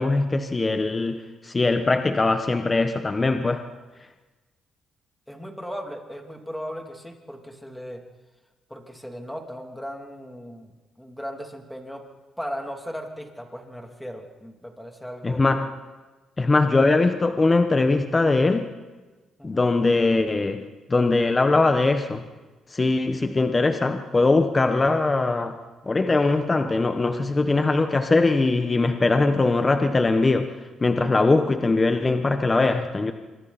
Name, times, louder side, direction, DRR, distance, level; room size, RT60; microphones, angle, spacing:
voice 1, 0.0-3.6 15.2-15.7 16.4-18.7 19.4-22.2 22.7-25.6 25.9-30.5 30.8-33.1, left 3 dB, 25° left, 7 dB, 1.3 m, -21 dB
voice 2, 5.3-8.0 8.7-10.7 11.0-12.0 12.4-15.4 19.4-19.7, equal, 5° left, 2 dB, 3.1 m, -37 dB
26.0 x 23.5 x 4.3 m, 1.2 s
cardioid pair, 90°, 0 cm